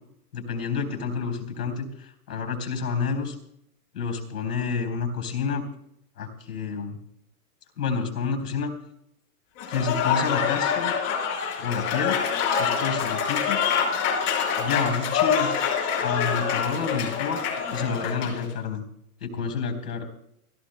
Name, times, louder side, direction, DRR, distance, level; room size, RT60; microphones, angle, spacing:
voice 1, 0.3-3.4 3.9-5.7 6.2-7.0 7.8-8.7 9.7-10.9 11.6-12.2 12.6-13.6 14.6-15.6 16.0-17.4 17.7-18.8 19.2-20.1, left 5 dB, 85° left, 6 dB, 3.8 m, -29 dB
Applause / Crowd, 9.6-18.4, left 7 dB, 50° left, 5.5 m, -26 dB
29.5 x 14.0 x 2.2 m, 0.73 s
hypercardioid pair, 150°, 46 cm